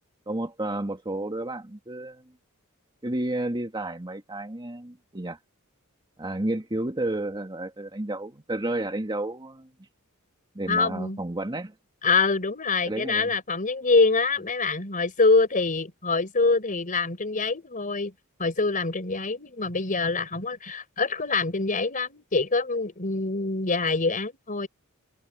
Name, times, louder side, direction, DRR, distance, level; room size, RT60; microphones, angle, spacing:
voice 1, 0.3-2.2 3.0-5.4 6.2-9.7 10.5-11.7 12.9-13.3, right 1 dB, 20° right, 2.0 m, -31 dB
voice 2, 10.7-11.2 12.0-18.1 18.4-24.7, left 3 dB, 40° left, 4.4 m, -25 dB
head